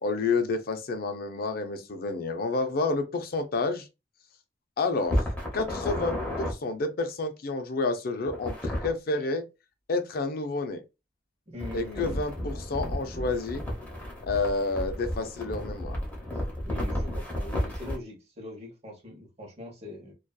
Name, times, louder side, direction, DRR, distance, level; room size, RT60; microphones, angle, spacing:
voice 1, 0.0-3.9 4.8-5.2 5.5-9.4 9.9-10.8 11.7-13.6 14.2-16.0, left 3 dB, 55° left, 0.4 m, -29 dB
sound 1, 5.0-6.5 8.3-8.9 11.6-18.0, left 1 dB, 10° left, 0.8 m, -32 dB
voice 2, 11.5-12.2 16.3-20.1, left 2 dB, 35° right, 0.9 m, -42 dB
2.7 x 2.3 x 2.2 m
head